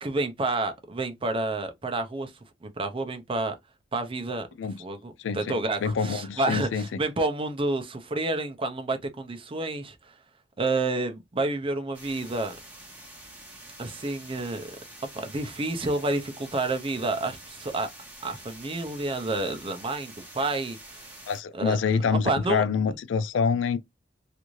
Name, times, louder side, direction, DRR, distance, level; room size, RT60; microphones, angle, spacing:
voice 1, 0.0-2.3 2.6-3.5 3.9-4.5 4.8-10.0 10.6-12.6 13.8-14.7 15.1-17.9 18.2-21.1 21.5-21.8 22.1-22.6, right 2 dB, 30° right, 0.5 m, -29 dB
voice 2, 5.2-5.5 5.8-7.0 21.3-23.8, left 5 dB, 85° left, 0.4 m, -26 dB
sound 1, 11.9-21.4, right 1 dB, 10° right, 1.1 m, -47 dB
2.5 x 2.5 x 3.0 m
head